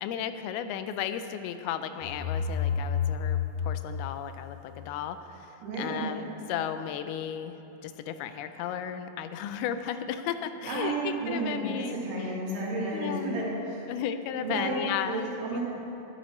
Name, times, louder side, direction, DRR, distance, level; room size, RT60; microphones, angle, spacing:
voice 1, 0.0-7.6 7.8-12.3 12.9-13.4 13.9-15.3 15.5-15.6, left 9 dB, 85° left, 10 dB, 2.4 m, -34 dB
sound 1, 2.0-4.9, left 7 dB, 65° left, 2.3 m, -30 dB
voice 2, 5.6-6.1 10.6-13.8 14.4-15.6, right 2 dB, 85° right, -6 dB, 4.2 m, -32 dB
13.5 x 10.5 x 3.1 m, 3.0 s
omnidirectional pair, 4.5 m